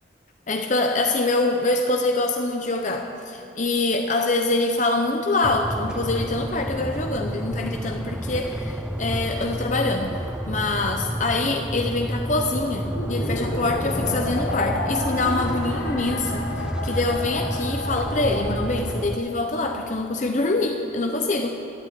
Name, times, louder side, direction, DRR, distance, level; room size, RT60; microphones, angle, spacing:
voice 1, 0.5-21.5, left 2 dB, 40° left, 3 dB, 0.7 m, -25 dB
sound 1, 5.4-19.1, equal, 5° right, 0.3 m, -30 dB
sound 2, 12.8-19.3, left 1 dB, 80° left, 2.4 m, -31 dB
13.0 x 8.7 x 9.7 m, 2.7 s
head